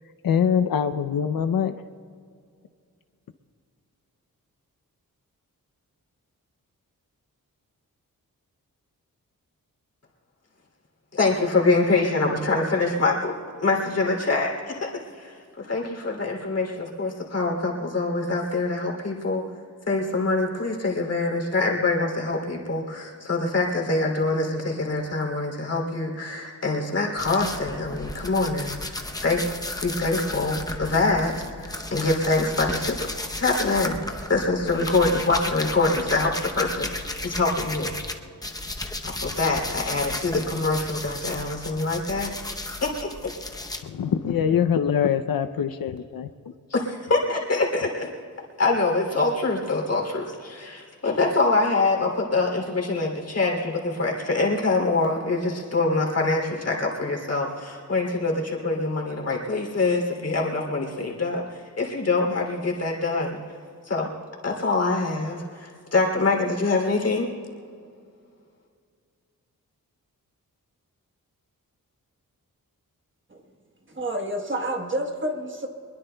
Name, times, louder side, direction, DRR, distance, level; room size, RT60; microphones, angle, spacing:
voice 1, 0.2-1.7 43.8-46.5, left 8 dB, 75° left, 9 dB, 0.6 m, -24 dB
voice 2, 11.1-13.3 13.6-14.9 15.2-19.4 19.9-29.4 29.8-33.1 33.3-34.0 34.3-37.9 39.0-42.3 42.8-43.3 46.7-48.1 48.6-63.4 63.9-64.1 64.4-67.3, left 3 dB, 45° left, 0 dB, 2.9 m, -25 dB
sound 1, 27.2-38.1 38.4-43.8, left 1 dB, 10° left, 0.7 m, -34 dB
voice 3, 73.9-75.7, right 1 dB, 35° right, 2 dB, 1.3 m, -29 dB
24.0 x 21.5 x 2.3 m, 2.2 s
wide cardioid pair, 165°, 35 cm